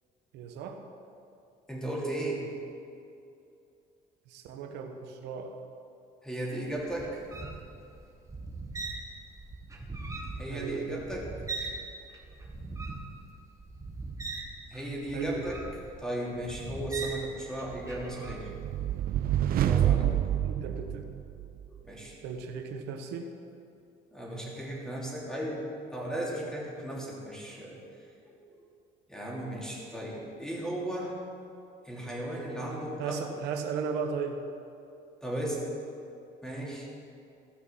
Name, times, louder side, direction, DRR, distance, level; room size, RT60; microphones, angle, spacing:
voice 1, 0.3-0.8 4.3-5.6 10.5-11.0 15.1-15.5 20.4-21.1 22.2-23.3 33.0-34.4, right 6 dB, 90° right, 5 dB, 1.1 m, -36 dB
voice 2, 1.7-2.5 6.2-7.2 10.4-11.3 14.7-15.6 16.0-18.5 19.6-20.1 21.7-22.1 24.1-25.6 25.9-27.8 28.2-28.5 29.1-31.2 31.8-33.4 35.2-35.6 36.4-36.9, right 1 dB, 5° left, -4 dB, 3.2 m, -36 dB
sound 1, 6.7-11.8 12.1-18.6 19.1-19.5, right 3 dB, 20° right, 1.7 m, -41 dB
sound 2, 17.8-21.6, right 11 dB, 60° right, 0.6 m, -28 dB
15.0 x 6.3 x 7.2 m, 2.6 s
cardioid pair, 110°, 17 cm